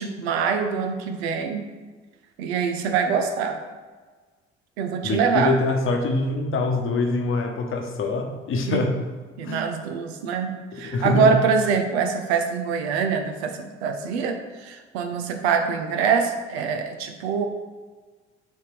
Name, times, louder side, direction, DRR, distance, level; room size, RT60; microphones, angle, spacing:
voice 1, 0.0-1.6 2.4-3.6 4.8-5.5 8.7-8.8 9.4-17.5, right 6 dB, 65° right, 5 dB, 0.7 m, -24 dB
voice 2, 5.0-8.9 9.4-9.7 10.8-11.3, left 2 dB, 35° left, 3 dB, 1.1 m, -24 dB
9.1 x 3.5 x 3.3 m, 1.4 s
figure-of-eight pair, 55°, 34 cm